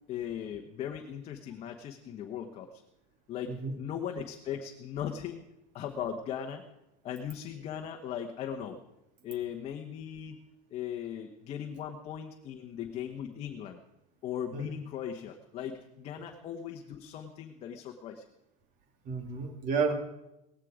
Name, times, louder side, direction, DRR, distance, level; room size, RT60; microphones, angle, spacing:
voice 1, 0.1-2.8 3.3-5.4 5.7-6.6 7.0-8.8 9.2-10.4 10.7-13.8 14.2-18.2, left 9 dB, 30° left, 4 dB, 1.1 m, -38 dB
voice 2, 19.0-19.9, right 5 dB, 40° right, 6 dB, 2.4 m, -31 dB
18.0 x 15.0 x 5.0 m, 0.89 s
supercardioid pair, 160°, 20 cm